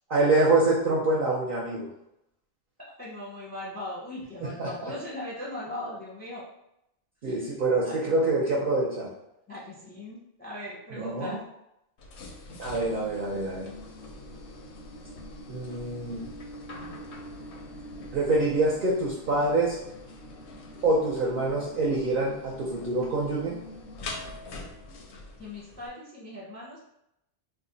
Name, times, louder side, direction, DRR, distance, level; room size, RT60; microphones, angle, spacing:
voice 1, 0.1-1.9 4.4-4.9 7.2-9.1 10.9-11.4 12.6-13.7 15.5-16.3 18.1-19.8 20.8-23.6, right 2 dB, 55° right, -5 dB, 0.7 m, -26 dB
voice 2, 2.8-6.4 7.2-7.5 7.8-8.2 9.5-11.4 25.4-26.8, left 1 dB, 10° left, -5 dB, 0.5 m, -39 dB
sound 1, 12.0-25.9, left 1 dB, 80° left, 0.8 m, -43 dB
2.5 x 2.0 x 3.8 m, 0.81 s
omnidirectional pair, 1.1 m